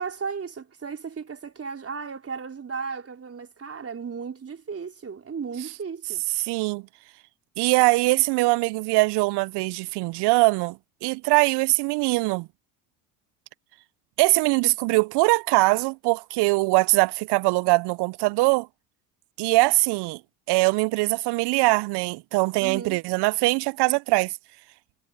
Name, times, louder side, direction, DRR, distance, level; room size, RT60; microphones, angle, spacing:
voice 1, 0.0-6.2 22.6-23.0, right 5 dB, 30° right, 4.0 m, -35 dB
voice 2, 6.4-6.8 7.6-12.5 14.2-18.7 19.4-20.2 20.5-24.3, right 24 dB, 60° right, 0.7 m, -22 dB
hypercardioid pair, 70°, 45 cm